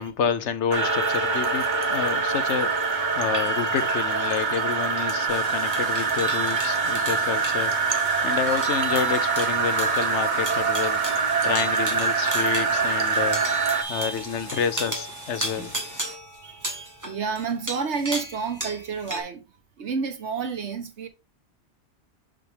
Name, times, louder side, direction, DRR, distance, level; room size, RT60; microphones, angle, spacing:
voice 1, 0.0-2.9 3.2-11.0 11.4-13.4 13.9-15.7, left 7 dB, 90° left, 1.1 m, -29 dB
sound 1, 0.7-19.2, equal, 15° right, 1.6 m, -35 dB
sound 2, 0.7-13.8, right 5 dB, 45° right, 1.0 m, -24 dB
Stream, 5.3-16.2, left 1 dB, 60° left, 2.8 m, -43 dB
voice 2, 13.7-14.2 14.5-14.6 16.4-19.4 19.8-21.1, right 5 dB, 80° right, 1.4 m, -30 dB
6.1 x 5.6 x 3.4 m
omnidirectional pair, 1.1 m